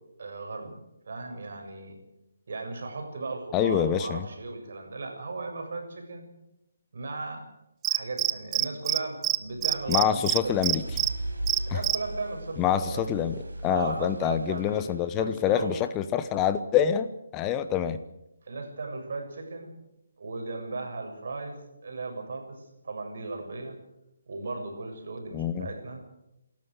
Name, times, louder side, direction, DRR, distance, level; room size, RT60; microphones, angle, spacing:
voice 1, 0.2-2.0 2.5-6.3 6.9-7.5 7.9-10.6 11.7-13.1 13.7-15.8 18.4-19.7 20.2-23.8 24.3-26.2, right 3 dB, 60° right, 3 dB, 7.2 m, -36 dB
voice 2, 3.5-4.3 9.9-10.8 11.7-11.8 12.6-13.3 13.6-18.0 25.3-25.7, left 9 dB, 20° left, 11 dB, 1.0 m, -26 dB
Cricket, 7.8-9.0 9.2-9.4 9.6-11.1 11.5-12.0, right 17 dB, 15° right, 0.8 m, -25 dB
sound 1, 9.2-15.3, right 2 dB, 80° right, 5.4 m, -38 dB
27.5 x 13.5 x 8.1 m, 0.88 s
figure-of-eight pair, 150°, 0 cm